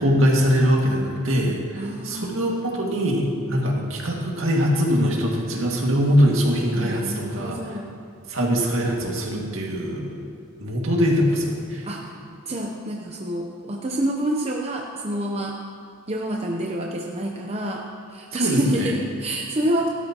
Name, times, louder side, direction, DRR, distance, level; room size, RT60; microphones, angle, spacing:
voice 1, 0.0-7.8 8.3-10.2 10.6-11.9 18.4-18.9, equal, 65° right, -1 dB, 2.0 m, -22 dB
voice 2, 1.8-2.8 6.7-7.9 11.8-12.1 12.5-15.6 16.1-19.9, right 1 dB, 30° right, 0 dB, 0.7 m, -28 dB
16.5 x 12.5 x 2.9 m, 2.5 s
head